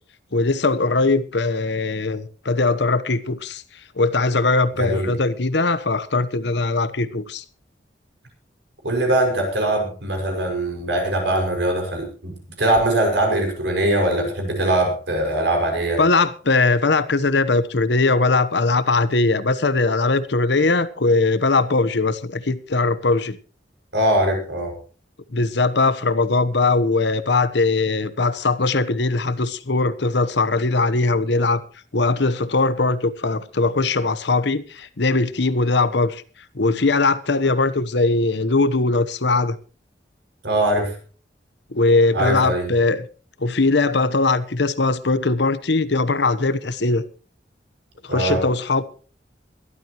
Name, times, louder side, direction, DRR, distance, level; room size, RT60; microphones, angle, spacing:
voice 1, 0.3-3.6 4.0-7.4 16.0-23.4 25.3-31.6 31.9-36.2 36.5-39.6 41.7-43.1 43.4-47.0 48.0-48.8, left 3 dB, 70° left, 15 dB, 1.1 m, -20 dB
voice 2, 4.8-5.2 8.8-16.0 23.9-24.8 40.4-41.0 42.1-42.7 48.1-48.4, right 1 dB, 70° right, 3 dB, 5.8 m, -21 dB
22.0 x 12.5 x 3.0 m, 0.38 s
head